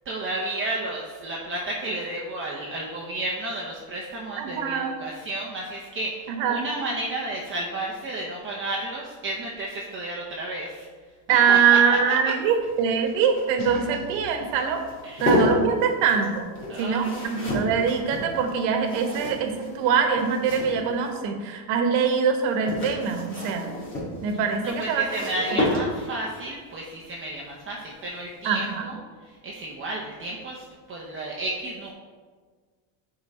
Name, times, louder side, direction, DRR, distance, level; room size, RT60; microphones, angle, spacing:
voice 1, 0.0-10.9 11.3-12.0 12.2-12.3 15.0-15.3 16.7-17.3 24.6-31.9, right 1 dB, 25° right, -2 dB, 0.8 m, -32 dB
voice 2, 4.4-5.0 6.3-6.6 11.3-14.8 15.2-16.5 16.8-23.7 24.2-25.1 28.4-28.8, right 6 dB, 70° right, 5 dB, 1.3 m, -23 dB
sound 1, 12.4-21.2 22.3-26.3 27.9-28.2 28.5-28.6, left 1 dB, 25° left, 2.2 m, -31 dB
sound 2, 13.6-15.5, left 5 dB, 45° left, 1.3 m, -45 dB
9.4 x 3.9 x 4.3 m, 1.5 s
cardioid pair, 135°, 47 cm